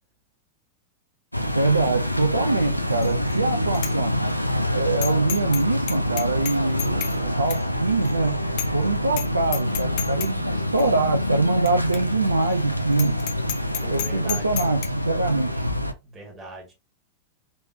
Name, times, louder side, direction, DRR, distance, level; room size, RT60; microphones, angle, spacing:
sound 1, 1.3-15.9, left 1 dB, 90° left, 0.5 m, -26 dB
voice 1, 1.5-4.1 4.7-8.4 8.7-13.2 13.9-15.6, right 3 dB, 80° right, 0.6 m, -24 dB
Bicycle bell, 3.0-3.4 3.7-3.9 4.3-4.4 5.0-5.6 5.9-7.2 7.5-7.6 8.0-8.1 8.6-8.8 9.1-9.3 9.5-10.3 10.8-10.9 11.7-11.8 11.9-12.0 12.4-12.5 12.9-14.9, left 11 dB, 50° left, 0.8 m, -30 dB
voice 2, 13.8-14.7 16.0-16.7, right 2 dB, 15° right, 1.8 m, -40 dB
4.1 x 3.4 x 2.7 m
figure-of-eight pair, 90°, 0 cm